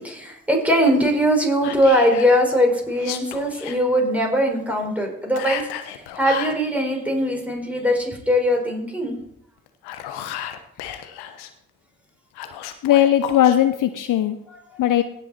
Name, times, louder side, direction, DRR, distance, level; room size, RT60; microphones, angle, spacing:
voice 1, 0.0-9.1 14.5-14.8, equal, 5° right, 1 dB, 5.1 m, -21 dB
Whispering, 1.6-2.3 2.9-3.8 5.3-6.6 9.7-11.5 12.3-13.6, left 11 dB, 75° left, 1.2 m, -33 dB
voice 2, 12.8-14.4 14.8-15.0, left 11 dB, 50° left, 11 dB, 0.7 m, -18 dB
17.5 x 6.2 x 4.4 m, 0.74 s
hypercardioid pair, 45°, 40 cm